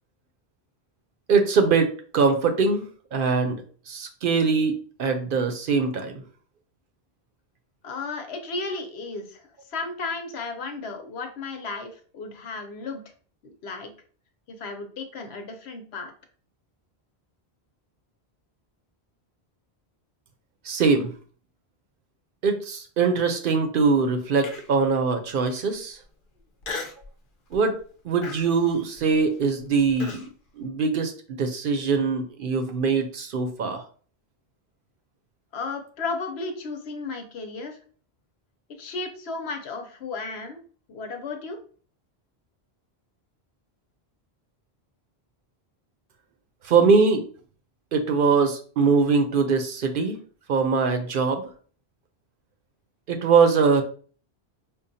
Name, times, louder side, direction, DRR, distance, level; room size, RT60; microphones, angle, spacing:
voice 1, 1.3-3.6 3.9-6.2 20.6-21.1 22.4-26.0 27.5-27.8 28.0-30.2 30.6-33.8 46.6-47.3 47.9-50.2 50.5-51.4 53.1-53.8, right 5 dB, 60° right, 6 dB, 0.7 m, -22 dB
voice 2, 7.8-13.0 13.4-13.9 14.5-16.1 35.5-37.8 38.8-40.6 40.9-41.6, left 3 dB, 80° left, 5 dB, 1.0 m, -34 dB
Human voice, 24.4-24.9 25.4-25.5 26.6-27.1 27.5-27.8 28.2-30.3, left 4 dB, 55° left, 0.7 m, -37 dB
5.1 x 2.3 x 2.6 m, 0.43 s
omnidirectional pair, 1.1 m